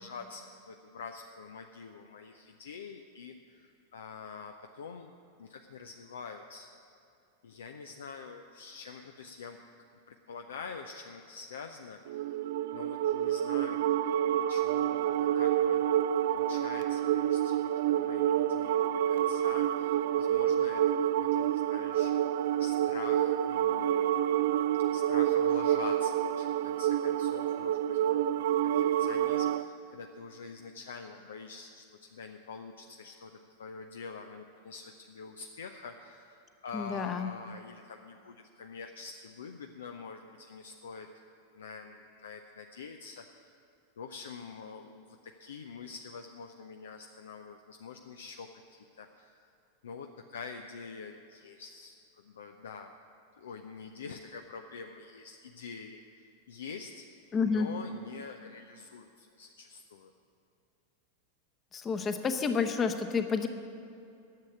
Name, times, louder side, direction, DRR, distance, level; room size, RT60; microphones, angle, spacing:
voice 1, 0.0-5.1 5.4-6.8 7.4-9.6 10.1-12.2 12.7-15.9 16.3-20.8 21.2-24.2 24.9-41.1 41.5-43.5 44.0-49.5 49.8-52.9 53.3-56.0 56.5-57.1 57.5-60.1, left 5 dB, 65° left, 5 dB, 0.5 m, -46 dB
sound 1, 12.1-29.7, right 11 dB, 55° right, 0.3 m, -28 dB
voice 2, 36.7-37.3 57.3-57.7 61.7-63.5, left 5 dB, 25° left, 7 dB, 0.9 m, -29 dB
10.5 x 7.7 x 9.4 m, 2.6 s
figure-of-eight pair, 90°, 0 cm